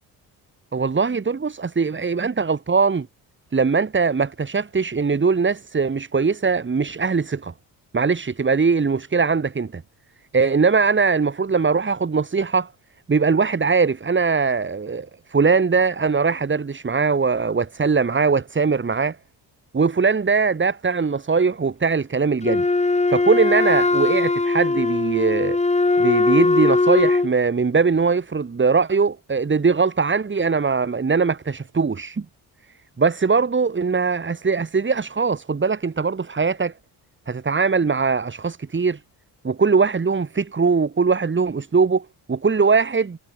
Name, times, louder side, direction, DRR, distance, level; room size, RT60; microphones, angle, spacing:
voice 1, 0.7-3.1 3.5-7.5 7.9-9.8 10.3-12.7 13.1-19.2 19.7-22.6 23.1-25.6 26.0-32.2 33.0-36.7 37.3-39.0 39.4-43.2, right 5 dB, 30° right, 7.7 m, -21 dB
Wind instrument woodwind instrument, 22.4-27.3, left 3 dB, 15° left, 5.0 m, -20 dB
cardioid pair, 115°, 40 cm